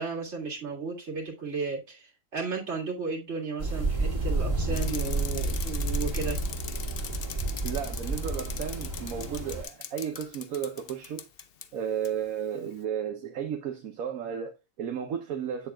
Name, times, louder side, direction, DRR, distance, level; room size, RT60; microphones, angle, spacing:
voice 1, 0.0-6.4, right 4 dB, 45° right, 2.2 m, -34 dB
sound 1, 3.6-9.6, right 2 dB, 15° right, 2.2 m, -30 dB
Bicycle, 4.7-11.7 12.0-12.1, left 8 dB, 70° left, 0.5 m, -41 dB
voice 2, 7.6-11.3 11.7-15.7, right 8 dB, 65° right, 1.2 m, -34 dB
8.1 x 6.8 x 2.2 m
omnidirectional pair, 1.7 m